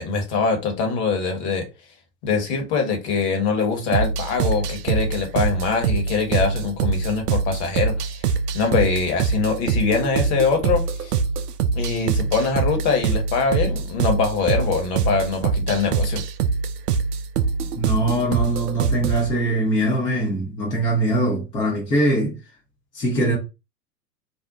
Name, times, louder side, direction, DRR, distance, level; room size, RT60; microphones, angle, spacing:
voice 1, 0.0-1.6 2.2-11.2 11.7-16.2, left 5 dB, 35° left, 1.0 m, -23 dB
sound 1, 3.9-19.3, right 5 dB, 70° right, 0.5 m, -23 dB
voice 2, 17.8-22.4 22.9-23.4, right 1 dB, 10° left, 0.4 m, -22 dB
2.6 x 2.1 x 3.5 m
figure-of-eight pair, 95°, 50 cm